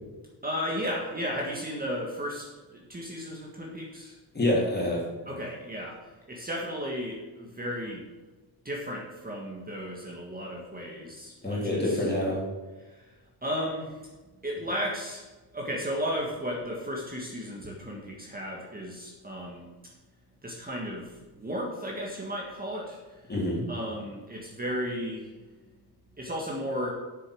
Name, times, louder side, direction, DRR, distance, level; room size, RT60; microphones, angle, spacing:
voice 1, 0.4-4.2 5.3-8.0 8.6-12.0 12.8-13.2 13.4-14.0 14.4-15.2 15.5-19.7 20.4-23.3 23.7-25.3 26.2-26.9, equal, 20° right, -2 dB, 1.9 m, -34 dB
voice 2, 4.3-5.0 11.4-12.5 23.3-23.7, left 1 dB, 25° left, -3 dB, 3.5 m, -26 dB
7.9 x 7.0 x 6.4 m, 1.2 s
wide cardioid pair, 125°, 40 cm